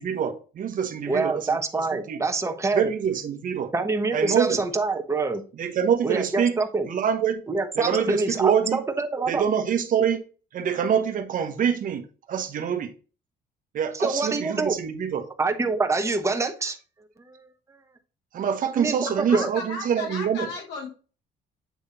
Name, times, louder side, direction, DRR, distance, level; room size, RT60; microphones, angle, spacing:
voice 1, 0.0-2.2 2.7-3.7 4.1-4.6 5.6-6.6 6.9-7.4 7.8-8.8 9.3-10.2 10.5-12.9 13.7-15.2 18.3-20.5, right 8 dB, 55° right, 1.2 m, -25 dB
voice 2, 1.1-2.9 3.7-5.4 6.0-6.9 7.5-9.4 13.9-14.7 15.4-16.8 17.2-17.5 18.8-19.0 19.3-19.5, right 3 dB, 15° right, 1.1 m, -26 dB
voice 3, 19.1-20.9, left 3 dB, 90° left, 2.7 m, -35 dB
8.3 x 3.3 x 4.2 m
cardioid pair, 110°, 17 cm